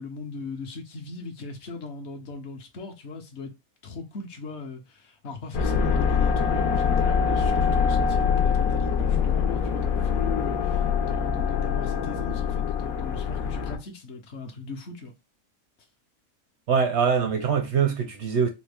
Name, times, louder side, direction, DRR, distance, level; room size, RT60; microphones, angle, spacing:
voice 1, 0.0-3.5 3.8-15.1, left 3 dB, 55° left, 0.9 m, -38 dB
sound 1, 5.5-13.8, left 6 dB, 80° left, 1.1 m, -24 dB
voice 2, 16.7-18.5, right 6 dB, 65° right, 0.7 m, -23 dB
4.1 x 2.1 x 3.3 m
omnidirectional pair, 1.5 m